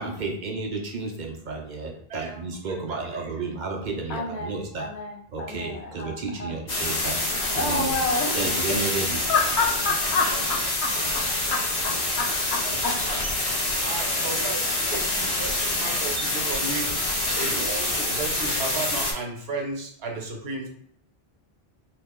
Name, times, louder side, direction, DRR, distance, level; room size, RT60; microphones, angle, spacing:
voice 1, 0.0-4.9 5.3-7.2 7.5-8.0 8.3-9.2, right 3 dB, 55° right, 0.6 m, -32 dB
voice 2, 2.7-3.0 10.8-10.9 12.6-12.8 13.8-14.6 14.9-17.0 17.4-20.7, right 3 dB, 70° right, 1.0 m, -34 dB
voice 3, 4.1-6.1 6.4-6.5 7.5-8.8 9.3-11.2 11.5-13.0, left 4 dB, 85° left, 1.0 m, -29 dB
sound 1, 6.7-19.1, left 2 dB, 60° left, 1.1 m, -26 dB
2.8 x 2.7 x 3.5 m
omnidirectional pair, 1.1 m